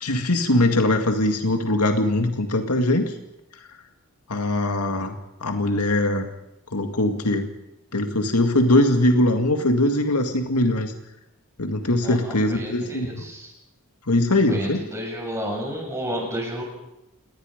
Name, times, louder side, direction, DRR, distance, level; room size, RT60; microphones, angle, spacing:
voice 1, 0.0-3.1 4.3-5.2 5.4-6.3 6.7-7.5 7.9-10.9 11.6-13.2 14.1-14.8, left 1 dB, 90° left, 5 dB, 2.1 m, -21 dB
voice 2, 12.0-13.5 14.5-16.6, equal, 15° right, 0 dB, 7.1 m, -31 dB
28.0 x 20.0 x 5.2 m, 0.90 s
head